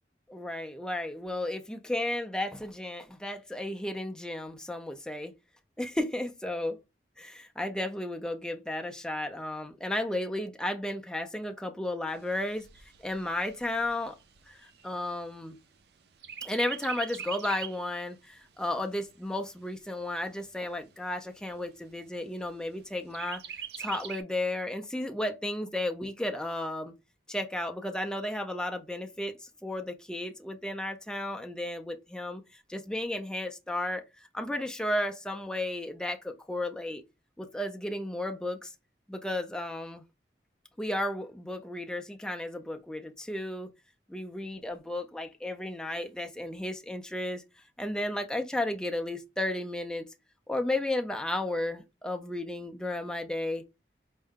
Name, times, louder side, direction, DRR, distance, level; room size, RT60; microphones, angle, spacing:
voice 1, 0.3-5.3 5.8-6.8 7.2-12.7 13.0-14.2 14.5-15.6 16.4-23.4 23.8-26.9 27.3-37.0 37.4-38.7 39.1-40.0 40.8-43.7 44.1-47.4 47.8-50.1 50.5-53.7, left 1 dB, 5° left, 0.4 m, -33 dB
Chirp tweet, 12.1-15.8 16.2-17.9 18.3-18.4 18.8-19.8 20.4-20.5 20.8-20.9 21.4-21.9 23.1-24.2, right 8 dB, 65° right, 0.5 m, -42 dB
4.5 x 2.1 x 3.5 m
head